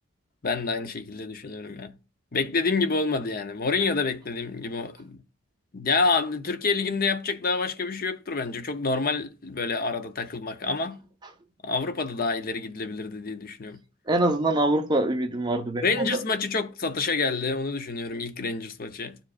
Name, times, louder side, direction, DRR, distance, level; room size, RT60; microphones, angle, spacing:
voice 1, 0.4-2.0 2.3-5.2 5.7-11.0 11.6-13.8 15.8-19.2, left 4 dB, 45° left, 0.6 m, -28 dB
voice 2, 14.1-16.2, right 1 dB, 20° right, 0.7 m, -24 dB
12.5 x 4.9 x 2.4 m
head